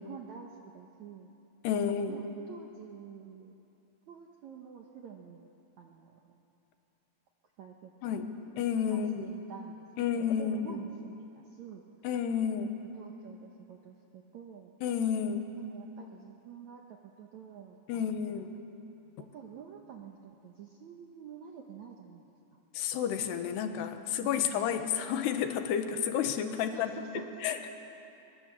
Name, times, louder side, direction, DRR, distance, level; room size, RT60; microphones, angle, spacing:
voice 1, 0.0-1.3 1.7-3.5 4.1-6.2 7.6-8.2 8.9-9.9 10.1-11.8 12.9-14.7 15.6-18.4 19.2-22.2 24.2-24.7 26.7-27.3, right 7 dB, 70° right, 2 dB, 1.8 m, -48 dB
voice 2, 1.6-2.2 8.0-8.3 8.6-9.3 10.0-10.8 12.0-12.7 14.8-15.5 17.9-18.6 22.7-26.9 27.4-27.7, left 8 dB, 75° left, 7 dB, 3.2 m, -31 dB
24.0 x 23.0 x 7.5 m, 2.9 s
omnidirectional pair, 4.9 m